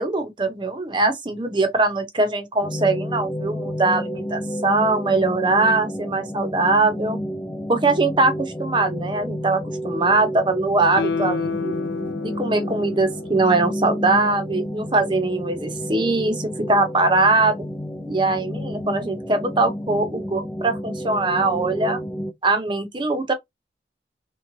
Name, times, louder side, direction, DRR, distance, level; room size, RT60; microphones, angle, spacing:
voice 1, 0.0-7.2 7.7-11.8 12.2-17.6 18.1-22.0 22.4-23.3, right 3 dB, 25° right, 0.8 m, -21 dB
sound 1, 2.6-22.3, equal, 10° left, 0.3 m, -31 dB
Guitar, 10.9-14.2 14.6-14.7, left 5 dB, 75° left, 0.5 m, -30 dB
3.4 x 3.1 x 2.6 m
head